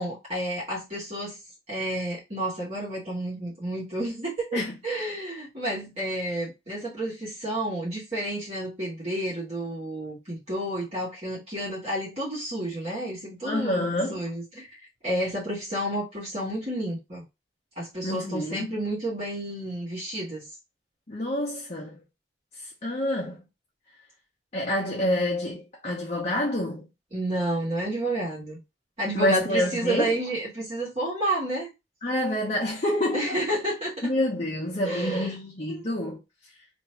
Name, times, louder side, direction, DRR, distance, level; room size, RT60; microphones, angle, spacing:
voice 1, 0.0-1.4 1.7-14.7 15.0-17.2 17.7-20.4 27.1-28.6 29.0-31.7 33.1-34.1 34.8-35.3 35.7-35.8, right 1 dB, 35° right, 1.6 m, -30 dB
voice 2, 13.4-14.3 18.0-18.8 21.1-22.0 22.5-23.4 24.5-26.9 29.1-30.2 32.0-33.3 34.0-36.2, left 1 dB, 40° left, 0.8 m, -28 dB
3.0 x 2.7 x 4.4 m
head